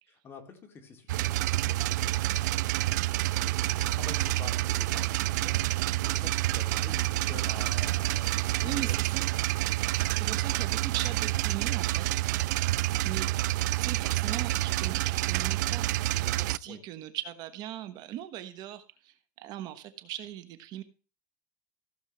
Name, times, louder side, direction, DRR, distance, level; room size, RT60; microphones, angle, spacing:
voice 1, 0.1-2.1 3.4-9.4 16.7-16.8, left 5 dB, 25° left, 4 dB, 2.3 m, -48 dB
sound 1, 1.1-16.6, right 16 dB, 80° right, 0.4 m, -28 dB
voice 2, 8.6-9.3 10.1-12.2 13.0-13.5 13.8-15.9 16.2-20.8, right 12 dB, 45° right, 11 dB, 1.2 m, -39 dB
16.0 x 7.3 x 3.1 m, 0.36 s
supercardioid pair, 135°, 10 cm